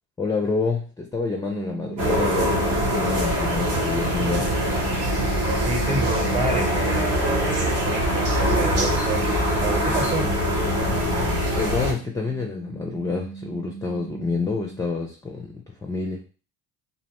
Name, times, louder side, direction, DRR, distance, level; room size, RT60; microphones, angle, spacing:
voice 1, 0.2-4.6 10.9-16.2, left 4 dB, 10° left, 1 dB, 0.4 m, -28 dB
sound 1, 1.5-3.7 4.3-7.4 8.6-11.5 12.0-15.0, right 6 dB, 50° right, 0.9 m, -40 dB
sound 2, 2.0-11.9, equal, 90° right, 1.0 m, -23 dB
voice 2, 5.5-10.3, right 2 dB, 15° right, 1 dB, 0.9 m, -29 dB
2.6 x 2.0 x 2.9 m, 0.37 s
supercardioid pair, 70°, 41 cm